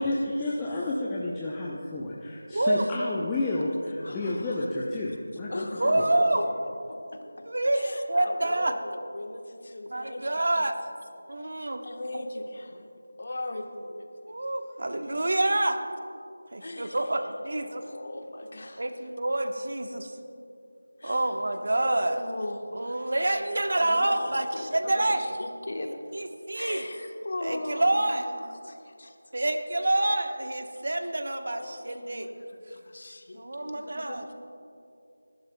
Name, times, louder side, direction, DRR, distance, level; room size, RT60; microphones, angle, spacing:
voice 1, 0.0-6.0, left 2 dB, 10° left, -6 dB, 0.7 m, -31 dB
voice 2, 2.5-2.8 5.8-6.4 7.4-8.7 9.9-10.8 11.3-11.8 12.1-12.2 14.3-15.8 16.5-17.8 18.8-20.2 21.0-22.2 22.7-25.2 26.1-26.8 27.4-28.3 29.3-32.3 33.3-34.2, right 1 dB, 55° right, 6 dB, 1.1 m, -27 dB
voice 3, 3.3-3.6 4.0-4.7 5.5-6.6 6.8-7.5 7.7-10.7 11.4-12.9 13.2-14.1 14.8-14.9 16.6-17.2 17.6-18.9 21.0-23.5 23.7-26.0 26.5-29.2 31.4-34.3, left 1 dB, 50° left, 4 dB, 1.2 m, -39 dB
27.5 x 11.5 x 2.3 m, 2.6 s
figure-of-eight pair, 165°, 0 cm